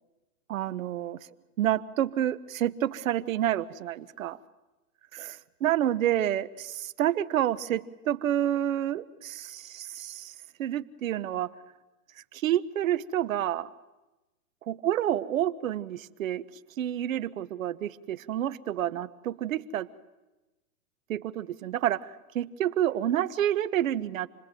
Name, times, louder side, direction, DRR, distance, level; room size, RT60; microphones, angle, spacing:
voice 1, 0.5-1.2 1.6-4.4 5.1-10.3 10.6-11.5 12.3-13.7 14.7-16.4 16.8-19.9 21.1-22.1 22.3-24.3, right 11 dB, 60° right, 17 dB, 1.1 m, -29 dB
28.0 x 20.5 x 9.1 m, 1.1 s
hypercardioid pair, 150°, 45 cm